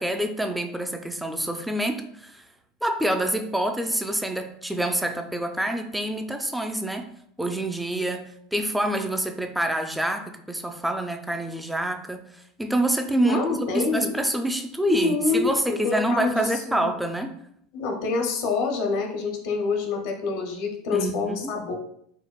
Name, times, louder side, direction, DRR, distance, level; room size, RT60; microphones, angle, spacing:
voice 1, 0.0-2.4 2.8-7.1 7.4-17.4 20.9-21.6, right 1 dB, 5° right, 6 dB, 0.4 m, -27 dB
voice 2, 13.2-14.1 14.9-16.9 17.7-21.8, left 4 dB, 70° left, 2 dB, 0.6 m, -27 dB
4.6 x 2.1 x 2.3 m, 0.70 s
supercardioid pair, 115°, 0 cm